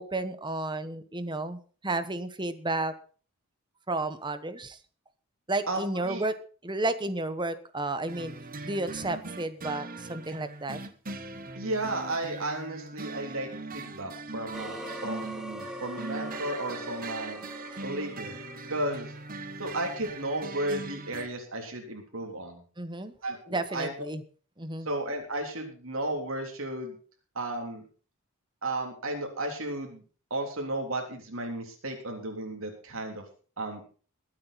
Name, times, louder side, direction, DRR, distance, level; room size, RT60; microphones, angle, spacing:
voice 1, 0.0-2.9 3.9-4.8 5.5-6.3 6.6-8.3 8.6-10.8 22.8-23.1 23.5-24.2 24.6-24.9, right 2 dB, 20° right, 11 dB, 1.2 m, -32 dB
voice 2, 5.7-6.2 11.5-17.4 17.8-18.4 18.7-19.1 19.6-22.6 23.2-23.9 24.9-27.0 27.4-27.8 28.6-30.0 30.3-33.2 33.6-33.8, right 1 dB, 65° right, 2 dB, 3.5 m, -34 dB
sound 1, 8.1-21.3, right 3 dB, 40° right, 1.2 m, -41 dB
sound 2, 14.5-19.5, equal, 5° right, 1.7 m, -42 dB
22.0 x 8.7 x 4.1 m, 0.40 s
head